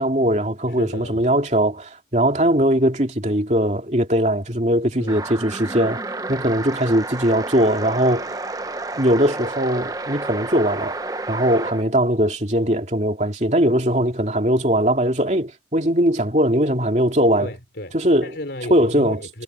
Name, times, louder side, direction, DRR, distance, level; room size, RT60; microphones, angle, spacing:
voice 1, 0.0-6.0 6.3-8.4 9.0-11.0 11.3-17.5 17.9-18.3 18.7-19.2, right 1 dB, 40° right, 2.8 m, -20 dB
voice 2, 0.7-1.3 5.0-5.2 17.4-19.4, left 1 dB, 70° left, 4.0 m, -34 dB
sound 1, 5.1-11.8, right 2 dB, 20° right, 0.9 m, -30 dB
head